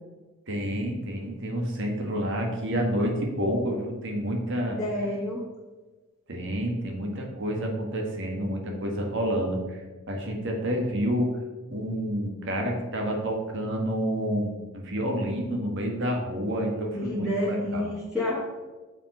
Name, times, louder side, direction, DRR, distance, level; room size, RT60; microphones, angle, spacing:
voice 1, 0.5-4.8 6.3-9.8 10.1-11.3 11.7-17.9, equal, 55° right, 1 dB, 1.5 m, -29 dB
voice 2, 4.8-5.4 16.9-18.4, left 1 dB, 5° right, -8 dB, 1.6 m, -29 dB
6.9 x 4.9 x 5.3 m, 1.2 s
head